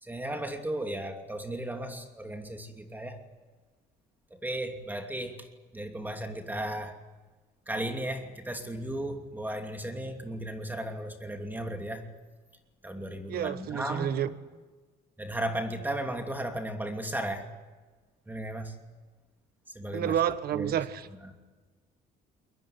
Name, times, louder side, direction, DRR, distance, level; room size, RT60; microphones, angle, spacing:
voice 1, 0.0-3.2 4.3-5.5 5.7-7.0 7.7-12.1 12.8-14.2 15.2-17.5 18.3-18.7 19.7-20.1 20.5-20.8 21.2-21.3, right 1 dB, 10° right, 2.9 m, -35 dB
voice 2, 13.3-14.3 19.9-21.1, right 10 dB, 65° right, 1.5 m, -29 dB
22.5 x 21.0 x 9.8 m
cardioid pair, 110°, 17 cm